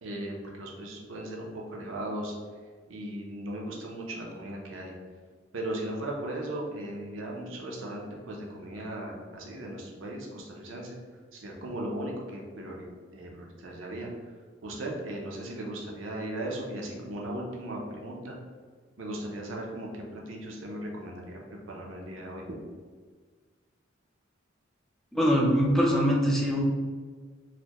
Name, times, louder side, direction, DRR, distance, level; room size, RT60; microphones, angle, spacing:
voice 1, 0.0-2.3 2.9-4.9 5.5-11.0 11.3-14.1 14.6-18.4 19.0-21.4 21.7-22.5, right 1 dB, 70° right, -1 dB, 0.7 m, -37 dB
voice 2, 25.1-26.6, equal, ahead, -3 dB, 0.4 m, -23 dB
4.1 x 2.2 x 2.9 m, 1.5 s
head